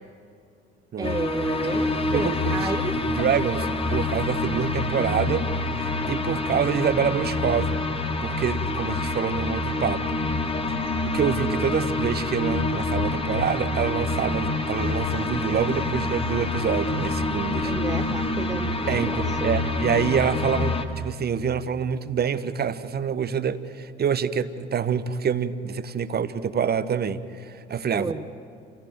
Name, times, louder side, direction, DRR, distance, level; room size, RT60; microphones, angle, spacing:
sound 1, 1.0-20.9, left 2 dB, 15° left, 1.8 m, -27 dB
voice 1, 1.0-3.0 17.6-19.5 27.9-28.3, right 3 dB, 10° right, 8 dB, 0.7 m, -31 dB
voice 2, 2.1-2.7 3.2-5.4 5.8-7.8 8.2-10.0 11.0-17.7 18.9-28.1, right 7 dB, 30° right, 14 dB, 1.1 m, -26 dB
28.0 x 16.5 x 9.2 m, 2.5 s
figure-of-eight pair, 60°, 33 cm